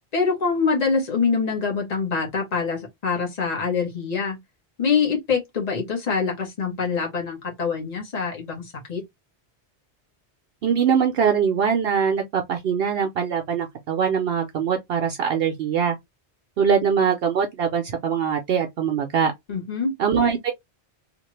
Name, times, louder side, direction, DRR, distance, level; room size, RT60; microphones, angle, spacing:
voice 1, 0.0-4.4 4.8-9.0 19.5-19.9, left 5 dB, 40° left, 1.2 m, -25 dB
voice 2, 10.6-16.0 16.6-19.3 20.0-20.5, right 7 dB, 65° right, 0.8 m, -22 dB
2.9 x 2.4 x 3.1 m
omnidirectional pair, 1.2 m